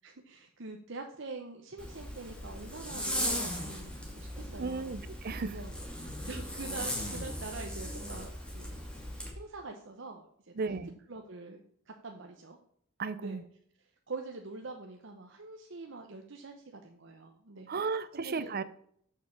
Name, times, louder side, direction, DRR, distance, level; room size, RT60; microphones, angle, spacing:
voice 1, 0.0-4.9 5.5-8.8 9.3-10.8 11.1-11.6 11.9-12.6 13.2-13.4 14.1-17.7 18.1-18.5, right 3 dB, 70° right, 1.0 m, -45 dB
Zipper (clothing), 1.8-9.3, equal, 5° left, 2.4 m, -38 dB
voice 2, 4.6-5.6 10.6-11.0 13.0-13.4 17.7-18.6, right 4 dB, 50° right, 0.6 m, -35 dB
7.3 x 6.5 x 7.0 m
head